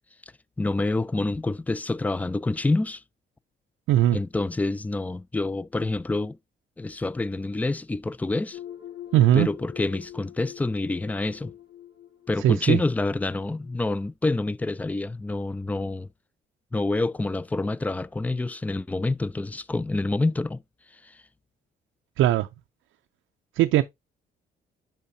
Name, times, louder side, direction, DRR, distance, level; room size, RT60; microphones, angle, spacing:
voice 1, 0.6-3.0 4.1-6.4 6.8-8.6 9.3-11.5 12.3-16.1 16.7-20.6 21.0-21.2, left 2 dB, 10° left, 0.3 m, -27 dB
voice 2, 3.9-4.2 9.1-9.5 12.4-12.8 22.2-22.5 23.6-23.8, right 13 dB, 80° right, 0.5 m, -19 dB
sound 1, 8.5-13.9, left 11 dB, 55° left, 1.7 m, -44 dB
10.0 x 3.7 x 2.6 m
cardioid pair, 90°, 20 cm